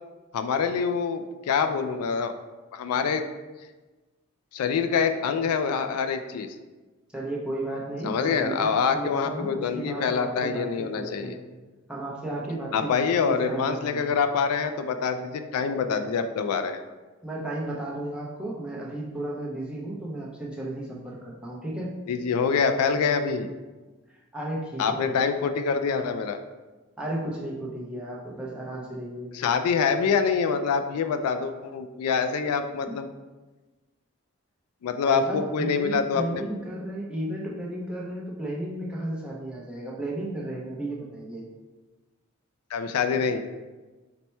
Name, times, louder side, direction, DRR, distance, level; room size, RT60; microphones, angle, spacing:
voice 1, 0.3-2.3 2.7-3.3 4.5-6.6 8.0-11.4 12.7-16.8 22.1-23.5 24.8-26.4 29.3-33.1 34.8-36.4 42.7-43.4, left 6 dB, 90° left, 8 dB, 0.3 m, -25 dB
voice 2, 7.1-11.4 11.9-12.9 13.2-14.1 17.2-22.0 24.3-25.3 27.0-29.3 32.9-33.0 35.1-41.4, right 1 dB, 5° right, -5 dB, 0.6 m, -34 dB
4.2 x 2.2 x 4.3 m, 1.2 s
head